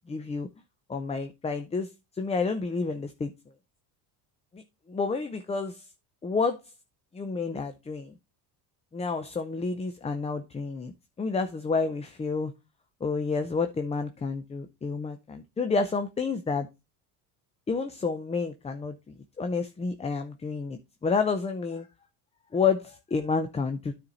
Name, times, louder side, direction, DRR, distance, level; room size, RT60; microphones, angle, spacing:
voice 1, 0.1-0.5 0.9-3.3 4.5-4.6 4.9-5.9 6.2-6.7 7.1-8.1 8.9-10.9 11.2-12.5 13.0-16.7 17.7-21.9 22.5-23.9, left 4 dB, 15° left, 0.5 m, -30 dB
9.6 x 4.3 x 3.9 m
supercardioid pair, 100°, 45 cm